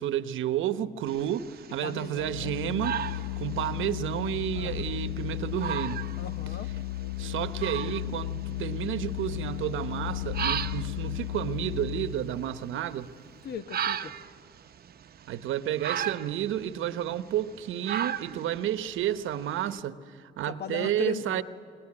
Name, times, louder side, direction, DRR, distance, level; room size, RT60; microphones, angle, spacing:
voice 1, 0.0-6.1 7.2-13.1 15.3-21.4, right 11 dB, 80° right, 1.0 m, -31 dB
sound 1, 1.1-19.8, right 9 dB, 50° right, 0.8 m, -38 dB
voice 2, 1.8-2.5 4.5-5.1 6.2-6.7 13.4-14.1 20.5-21.4, left 7 dB, 55° left, 1.2 m, -38 dB
Organ, 2.1-12.4, left 14 dB, 85° left, 0.6 m, -34 dB
25.0 x 20.5 x 9.8 m
cardioid pair, 90°, 20 cm